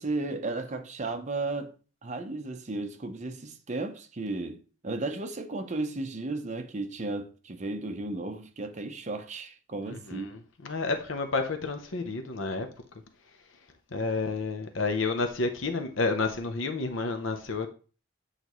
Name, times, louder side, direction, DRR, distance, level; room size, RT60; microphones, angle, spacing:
voice 1, 0.0-1.7 2.0-10.3, right 2 dB, 35° right, 0.7 m, -34 dB
voice 2, 9.9-12.7 13.9-17.7, left 3 dB, 75° left, 0.8 m, -30 dB
8.2 x 4.0 x 3.0 m
head